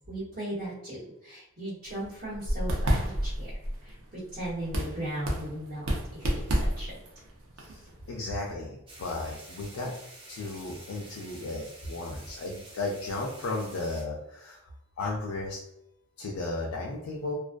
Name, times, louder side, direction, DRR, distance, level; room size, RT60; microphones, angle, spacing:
voice 1, 0.1-3.6 3.8-7.0, right 1 dB, 50° right, -13 dB, 1.0 m, -37 dB
sound 1, 1.8-8.5, equal, 85° right, 0.6 m, -31 dB
voice 2, 7.6-9.9 10.3-14.7 15.0-15.6 16.2-17.4, left 2 dB, 80° left, -2 dB, 0.4 m, -35 dB
sound 2, 8.9-14.0, right 2 dB, 25° right, 0.6 m, -49 dB
2.4 x 2.1 x 2.4 m, 0.87 s
head